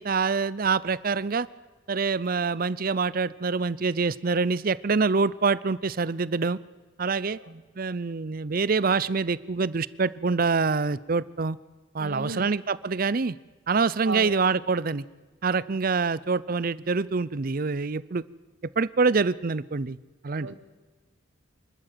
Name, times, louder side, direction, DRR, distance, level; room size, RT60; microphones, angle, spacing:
voice 1, 0.0-1.5 1.9-6.6 7.0-7.4 7.8-11.6 11.9-13.4 13.7-15.0 15.4-18.2 18.8-20.0 20.2-20.5, right 4 dB, 45° right, 19 dB, 0.6 m, -25 dB
voice 2, 7.3-7.6 12.0-12.5 14.0-14.3 15.7-15.8 20.4-20.6, right 3 dB, 70° right, 11 dB, 1.6 m, -35 dB
25.5 x 13.0 x 9.1 m, 1.2 s
head